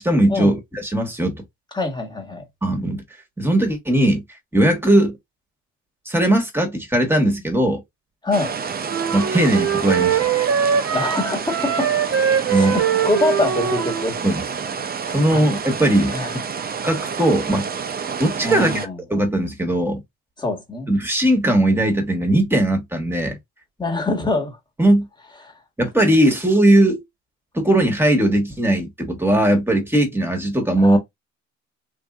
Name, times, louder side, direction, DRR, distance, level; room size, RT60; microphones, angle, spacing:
voice 1, 0.0-1.4 2.6-3.0 3.4-4.2 4.5-5.2 6.0-7.8 9.1-10.2 12.5-12.8 14.2-14.4 15.1-16.1 16.8-17.7 18.2-18.7 19.1-20.0 20.9-23.4 24.8-25.1 25.8-27.0 27.5-31.0, right 1 dB, 5° right, 1.3 m, -18 dB
voice 2, 1.7-2.4 8.2-8.5 10.9-12.3 12.5-14.2 15.1-15.4 16.1-16.4 18.4-19.0 20.4-20.9 23.8-24.6 30.8-31.0, left 2 dB, 15° left, 1.5 m, -24 dB
sound 1, 8.3-18.9, right 6 dB, 30° right, 0.5 m, -29 dB
sound 2, 8.9-14.1, right 8 dB, 50° right, 0.9 m, -22 dB
3.3 x 2.7 x 2.3 m
cardioid pair, 90°, 30 cm